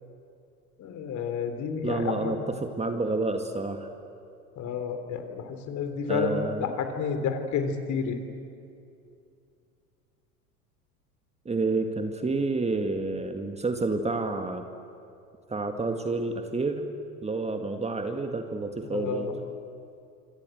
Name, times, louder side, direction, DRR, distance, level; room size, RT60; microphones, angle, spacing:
voice 1, 0.8-2.3 4.6-8.2 18.8-19.4, left 6 dB, 40° left, 7 dB, 3.6 m, -30 dB
voice 2, 1.8-3.9 6.1-6.7 11.5-14.6 15.5-16.9 17.2-19.3, right 3 dB, 15° right, 6 dB, 1.9 m, -29 dB
27.0 x 26.0 x 8.0 m, 2.5 s
figure-of-eight pair, 80°, 45 cm